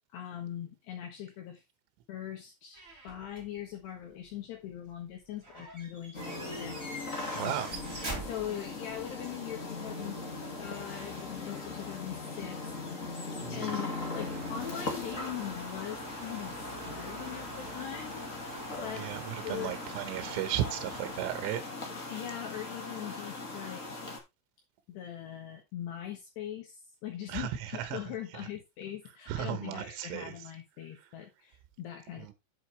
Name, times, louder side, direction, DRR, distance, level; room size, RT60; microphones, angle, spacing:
voice 1, 0.1-1.6 2.1-7.5 8.2-10.3 10.6-13.2 13.5-16.6 16.8-18.3 18.8-19.7 22.1-24.0 24.9-32.3, left 11 dB, 65° left, 3.2 m, -41 dB
sound 1, 2.7-3.6 5.4-9.0, right 2 dB, 20° right, 3.0 m, -43 dB
sound 2, 6.1-24.2, left 3 dB, 40° left, 1.1 m, -40 dB
voice 2, 7.3-7.7 13.4-13.6 19.0-21.7 27.3-27.5 27.8-28.0 29.3-30.3, right 12 dB, 80° right, 3.7 m, -35 dB
sound 3, 14.1-21.2, right 5 dB, 45° right, 2.9 m, -47 dB
8.7 x 8.0 x 3.4 m
omnidirectional pair, 5.7 m